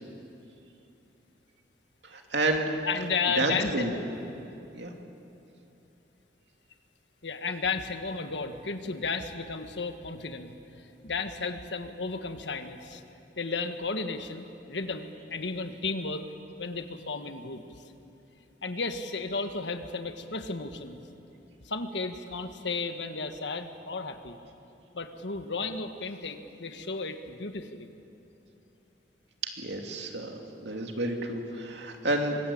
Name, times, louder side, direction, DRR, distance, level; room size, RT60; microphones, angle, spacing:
voice 1, 2.0-2.7 3.4-3.9 4.7-4.9 29.6-32.4, right 2 dB, 70° right, 2 dB, 2.7 m, -30 dB
voice 2, 2.8-4.0 7.2-13.0 13.4-16.2 16.6-17.6 18.6-21.0 21.6-24.4 24.9-27.9, left 4 dB, 75° left, 7 dB, 1.6 m, -33 dB
24.0 x 21.0 x 8.7 m, 2.8 s
head